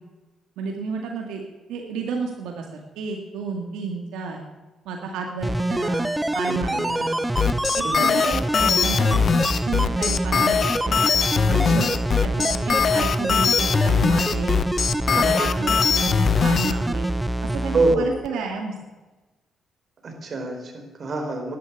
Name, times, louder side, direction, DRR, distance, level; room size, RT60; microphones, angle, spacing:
voice 1, 0.6-1.4 1.7-2.7 3.0-4.4 4.9-7.3 7.8-9.2 9.5-11.0 11.7-11.9 12.2-14.6 15.3-16.2 16.4-17.1 17.4-18.7, right 4 dB, 90° right, 1 dB, 2.1 m, -31 dB
sound 1, 5.4-18.0 18.2-18.3, right 1 dB, 10° right, 0.7 m, -25 dB
sound 2, 7.4-16.7, left 6 dB, 50° left, 0.9 m, -21 dB
voice 2, 11.5-11.9 15.1-15.4 17.7-18.1 20.0-21.6, right 2 dB, 45° right, 3 dB, 4.2 m, -26 dB
11.5 x 11.0 x 8.4 m, 1.2 s
cardioid pair, 90°, 0 cm